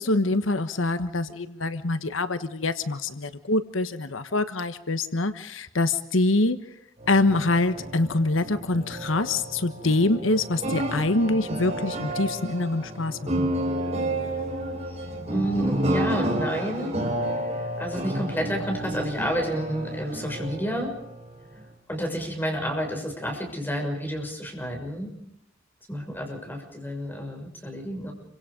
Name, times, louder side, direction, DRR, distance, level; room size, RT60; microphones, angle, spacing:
voice 1, 0.0-6.6 7.1-13.3, left 2 dB, 90° left, 11 dB, 1.3 m, -25 dB
sound 1, 7.0-21.7, right 1 dB, 35° right, 4.3 m, -31 dB
voice 2, 15.3-17.0 17.8-20.9 21.9-25.1 25.9-28.1, equal, 10° left, 2 dB, 6.5 m, -30 dB
28.5 x 25.0 x 5.2 m, 0.76 s
head